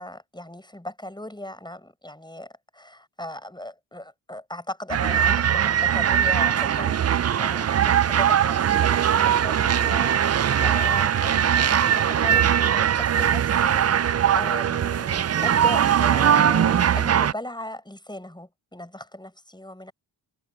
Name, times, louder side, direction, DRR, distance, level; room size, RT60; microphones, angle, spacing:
voice 1, 0.0-10.3 10.6-19.9, left 1 dB, 10° left, 6.8 m, -37 dB
sound 1, 4.9-17.3, right 9 dB, 35° right, 0.4 m, -21 dB
cardioid pair, 65°, 47 cm